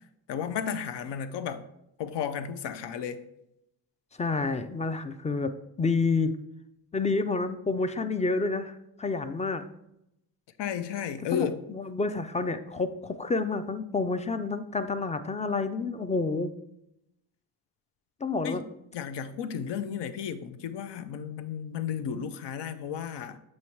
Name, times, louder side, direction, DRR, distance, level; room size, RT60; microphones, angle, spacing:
voice 1, 0.3-1.7 2.0-3.2 10.6-11.6 18.4-18.6 18.9-23.4, left 8 dB, 85° left, 0.6 m, -33 dB
voice 2, 4.2-5.5 5.8-6.3 6.9-9.6 11.3-16.5 18.2-18.6, left 3 dB, 20° left, 0.3 m, -29 dB
7.7 x 3.1 x 4.5 m
cardioid pair, 125°, 41 cm